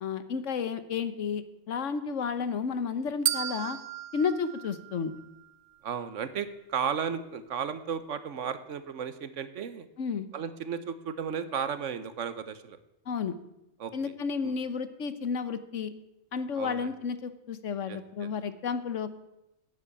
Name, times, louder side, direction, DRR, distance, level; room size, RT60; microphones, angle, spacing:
voice 1, 0.0-3.8 4.1-5.1 10.0-10.3 13.1-13.3 13.9-15.9 16.3-19.1, left 6 dB, 70° left, 12 dB, 1.3 m, -32 dB
sound 1, 3.3-5.5, right 12 dB, 90° right, 1.0 m, -34 dB
voice 2, 5.8-9.9 10.3-12.8 13.8-13.9 14.4-14.5 16.6-16.9 17.9-18.3, right 7 dB, 75° right, 13 dB, 1.3 m, -34 dB
10.5 x 9.3 x 8.3 m, 0.90 s
omnidirectional pair, 1.3 m